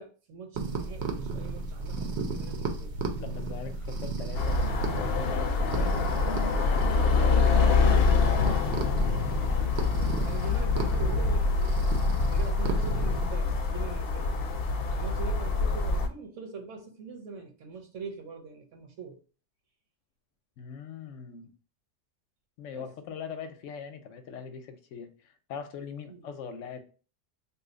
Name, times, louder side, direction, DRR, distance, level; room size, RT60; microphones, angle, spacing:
voice 1, 0.0-3.0 6.9-8.8 9.5-11.7 12.3-14.4 14.9-19.2 22.7-22.9 26.1-26.2, right 4 dB, 90° right, 1.2 m, -42 dB
sound 1, 0.5-13.3, right 3 dB, 70° right, 0.9 m, -34 dB
voice 2, 3.2-4.6 5.0-6.0 20.6-21.5 22.6-26.8, left 6 dB, 90° left, 0.9 m, -41 dB
sound 2, 4.3-16.1, left 4 dB, 60° left, 0.7 m, -25 dB
2.7 x 2.4 x 3.8 m
omnidirectional pair, 1.2 m